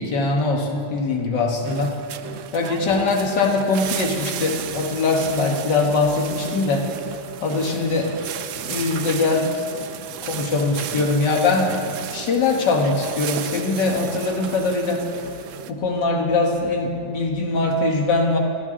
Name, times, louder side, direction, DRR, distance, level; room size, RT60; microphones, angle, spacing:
voice 1, 0.0-2.0 2.5-6.9 7.4-8.1 8.7-9.6 10.2-15.1 15.7-18.4, left 3 dB, 80° left, 1 dB, 2.0 m, -22 dB
sound 1, 1.6-15.7, right 10 dB, 75° right, 0.7 m, -34 dB
21.5 x 13.5 x 3.7 m, 2.4 s
omnidirectional pair, 1.9 m